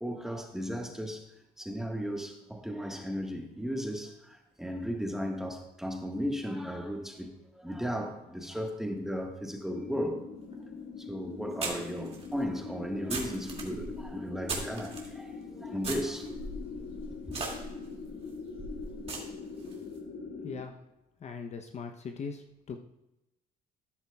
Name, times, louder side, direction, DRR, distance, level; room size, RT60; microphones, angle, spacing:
voice 1, 0.0-10.2 11.0-16.6 17.2-17.3, equal, 5° right, 1.5 m, -36 dB
sound 1, 9.7-20.6, left 5 dB, 65° left, 1.7 m, -43 dB
sound 2, 10.5-10.6 11.6-15.1 15.8-19.8, right 3 dB, 35° right, 2.3 m, -39 dB
voice 2, 21.2-22.8, left 5 dB, 40° left, 0.8 m, -40 dB
13.0 x 10.5 x 2.3 m
cardioid pair, 110°, 17 cm